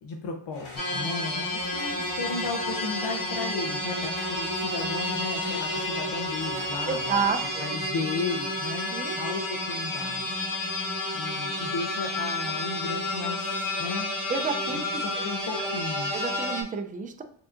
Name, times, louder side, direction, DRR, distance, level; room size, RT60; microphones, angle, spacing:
voice 1, 0.0-8.9 9.2-10.4 11.1-13.5 13.8-14.1 14.7-16.1, left 4 dB, 60° left, 1 dB, 0.7 m, -35 dB
sound 1, 0.5-7.5, left 3 dB, 80° left, 1.3 m, -46 dB
sound 2, 0.8-16.6, left 1 dB, 40° left, 1.2 m, -30 dB
voice 2, 6.9-7.6 8.9-9.1 14.3-15.0 16.1-17.2, right 5 dB, 20° right, 7 dB, 0.4 m, -30 dB
4.7 x 2.8 x 2.4 m, 0.62 s
cardioid pair, 85°, 49 cm